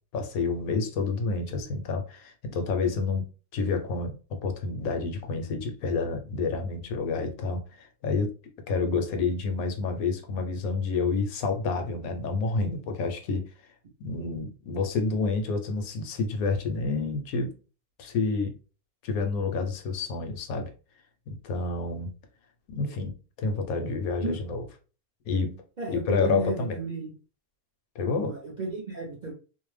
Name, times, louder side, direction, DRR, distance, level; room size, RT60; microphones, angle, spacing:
voice 1, 0.1-3.2 3.5-8.3 8.7-13.5 14.0-17.5 18.0-18.6 19.0-20.7 21.3-22.1 22.7-24.6 25.3-25.6 25.9-26.8 28.0-28.4, left 4 dB, 75° left, 1.0 m, -29 dB
voice 2, 25.8-27.1 28.0-29.3, right 4 dB, 50° right, 0.5 m, -34 dB
2.6 x 2.1 x 3.2 m
omnidirectional pair, 1.6 m